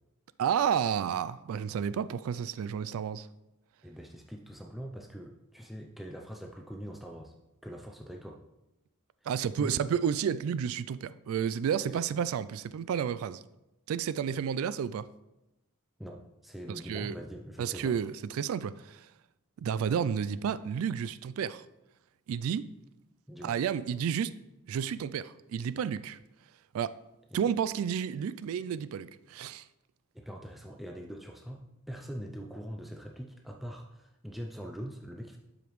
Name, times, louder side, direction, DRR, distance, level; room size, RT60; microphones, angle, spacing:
voice 1, 0.4-3.3 9.3-13.4 13.9-15.1 16.7-17.2 17.6-19.1 19.6-21.6 22.3-22.7 23.4-24.3 24.7-26.2 26.7-27.0 27.3-29.7, right 8 dB, 70° right, 0.3 m, -31 dB
voice 2, 3.8-7.3 7.6-8.4 9.6-9.9 11.8-12.0 16.0-18.0 23.3-23.5 27.3-27.5 30.1-35.4, equal, ahead, 0.5 m, -43 dB
12.0 x 5.0 x 3.1 m
head